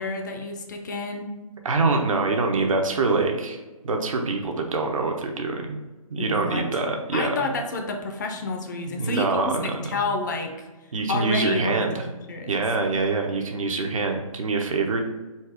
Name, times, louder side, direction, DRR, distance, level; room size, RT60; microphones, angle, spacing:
voice 1, 0.0-1.3 6.2-6.6 7.1-10.7 11.1-12.5, left 3 dB, 30° left, 4 dB, 0.5 m, -29 dB
voice 2, 1.6-3.6 3.8-5.8 6.1-7.5 8.9-10.0 10.9-12.0 12.5-15.0, right 3 dB, 65° right, 3 dB, 0.9 m, -25 dB
4.3 x 3.6 x 3.4 m, 1.2 s
hypercardioid pair, 160°, 19 cm